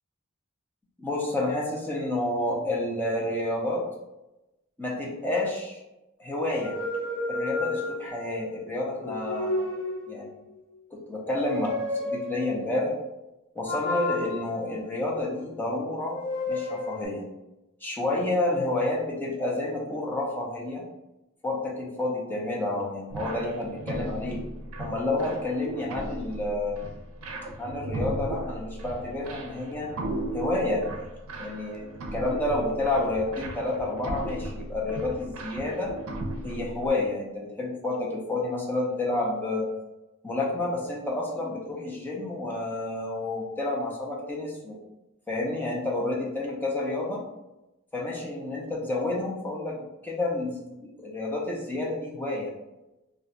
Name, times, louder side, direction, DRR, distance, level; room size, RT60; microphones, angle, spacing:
voice 1, 1.0-3.8 4.8-5.8 6.2-6.7 7.3-9.7 10.1-10.3 10.9-12.9 13.5-16.2 16.5-17.2 17.8-20.8 21.4-24.4 24.8-26.9 27.6-29.9 30.3-31.1 31.4-31.9 32.1-35.9 36.4-39.7 40.2-44.8 45.3-47.2 47.9-52.5, left 2 dB, 10° left, -3 dB, 0.6 m, -29 dB
sound 1, 6.5-8.3 9.0-10.3 11.2-12.6 13.7-15.5 16.1-17.1, left 2 dB, 50° left, 0.8 m, -32 dB
sound 2, 23.1-36.9, right 1 dB, 75° right, 0.5 m, -36 dB
2.5 x 2.3 x 3.9 m, 0.97 s
head